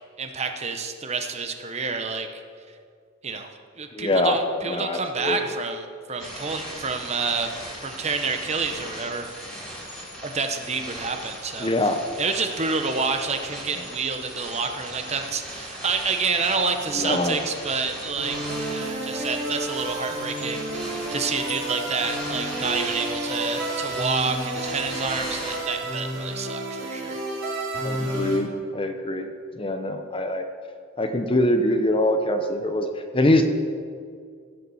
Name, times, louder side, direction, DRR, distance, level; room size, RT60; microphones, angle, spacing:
voice 1, 0.2-2.3 3.2-3.5 3.8-7.5 7.8-9.3 10.2-27.2, right 4 dB, 30° right, 6 dB, 0.9 m, -28 dB
voice 2, 3.9-4.4 4.7-5.4 11.6-12.0 16.9-17.4 27.8-29.3 29.6-30.5 31.0-32.9 33.1-33.4, left 1 dB, 25° left, 6 dB, 0.8 m, -23 dB
sound 1, 6.2-25.6, equal, ahead, 3.2 m, -38 dB
sound 2, 18.2-28.4, right 1 dB, 60° right, 4.0 m, -31 dB
15.0 x 6.8 x 7.1 m, 2.2 s
head